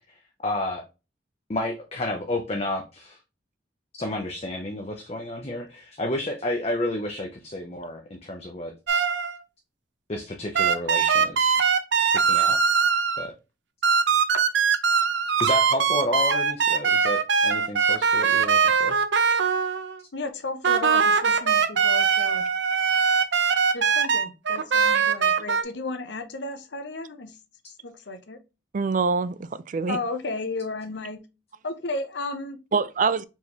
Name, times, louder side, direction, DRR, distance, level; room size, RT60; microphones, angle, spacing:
voice 1, 0.4-0.9 1.5-3.2 4.0-8.7 10.1-11.6 12.1-12.6 13.2-13.3 15.4-19.0, left 1 dB, 35° left, 0.6 m, -31 dB
sound 1, 8.9-9.4 10.6-13.3 13.8-20.0 20.6-25.6, right 6 dB, 80° right, 0.6 m, -21 dB
voice 2, 20.1-22.5 23.7-27.4 27.8-28.4 29.9-31.2 31.6-32.6, left 3 dB, 70° left, 0.8 m, -33 dB
voice 3, 28.7-30.0 32.7-33.3, right 4 dB, 45° right, 0.4 m, -25 dB
4.4 x 3.4 x 2.9 m
head